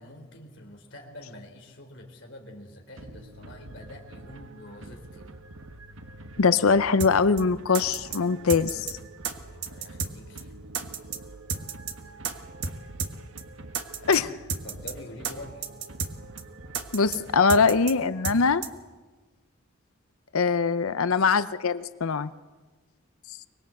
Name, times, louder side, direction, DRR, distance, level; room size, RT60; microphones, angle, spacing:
voice 1, 0.0-5.4 9.3-10.5 14.6-15.6, left 1 dB, 60° left, 3 dB, 3.6 m, -46 dB
sound 1, 2.9-18.0, right 2 dB, 75° right, 1.3 m, -46 dB
voice 2, 6.4-9.0 14.1-14.3 16.9-18.6 20.3-22.3, left 5 dB, 90° left, 14 dB, 0.7 m, -22 dB
sound 2, 7.0-7.1 7.4-7.5 7.7-8.2 8.5-8.9 9.2-9.3 9.6-10.1 10.4-10.5 10.7-11.2 11.5-11.9 12.2-12.3 12.6-12.7 13.0-13.1 13.4-13.5 13.7-14.2 14.5-14.9 15.2-15.3 15.6-16.1 16.4-16.5 16.7-17.2 17.5-17.9 18.2-18.4 18.6-18.7, right 6 dB, 55° right, 1.5 m, -31 dB
24.0 x 20.5 x 7.7 m, 1.3 s
head